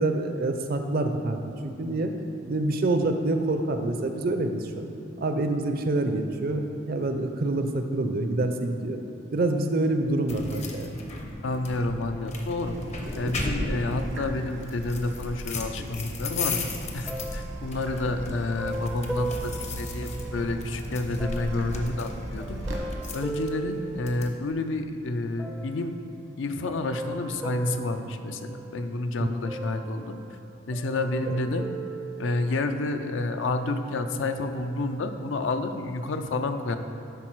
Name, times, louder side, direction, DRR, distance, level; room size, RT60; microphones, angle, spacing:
voice 1, 0.0-2.1 2.5-4.8 5.2-9.0 9.3-10.9 29.2-29.3 31.3-31.4, right 2 dB, 50° right, 6 dB, 0.5 m, -26 dB
sound 1, 10.3-24.3, left 3 dB, 35° left, 0.7 m, -37 dB
voice 2, 11.2-12.8 13.1-22.6 23.1-25.9 26.4-30.2 30.7-31.7 32.2-36.8, left 2 dB, 75° left, 8 dB, 0.5 m, -29 dB
Water tap faucet / Drip, 12.6-22.8, right 1 dB, 80° right, 1.2 m, -37 dB
sound 2, 17.1-20.7 21.2-24.7 25.4-26.0 26.7-29.0 29.4-30.5 30.7-32.8 33.4-33.5, right 3 dB, ahead, 0.4 m, -38 dB
10.5 x 4.0 x 4.6 m, 2.8 s
head